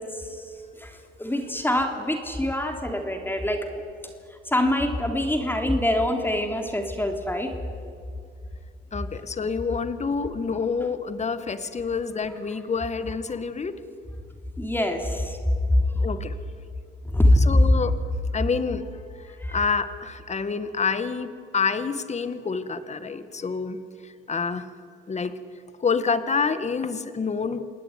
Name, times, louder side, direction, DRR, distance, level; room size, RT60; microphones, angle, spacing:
voice 1, 0.0-3.7 4.4-7.6 10.8-10.9 14.6-15.4 15.7-16.1 17.0-17.7 19.4-19.6, left 1 dB, 10° left, 4 dB, 3.4 m, -24 dB
voice 2, 8.9-13.8 16.0-16.3 17.5-17.9 18.3-23.8 24.3-24.7 25.1-25.3 25.8-27.6, left 5 dB, 35° left, 12 dB, 1.9 m, -27 dB
28.0 x 20.0 x 9.5 m, 2.4 s
cardioid pair, 90°, 20 cm